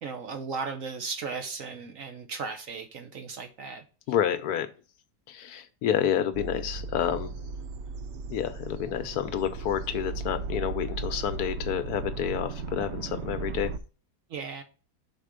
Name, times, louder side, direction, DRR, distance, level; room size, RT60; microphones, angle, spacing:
voice 1, 0.0-3.8 14.3-14.6, right 5 dB, 55° right, 1.1 m, -36 dB
voice 2, 4.1-4.7 5.3-7.3 8.3-13.7, left 9 dB, 70° left, 1.1 m, -29 dB
sound 1, 6.3-13.8, right 4 dB, 90° right, 0.6 m, -36 dB
6.0 x 4.2 x 4.9 m
omnidirectional pair, 1.8 m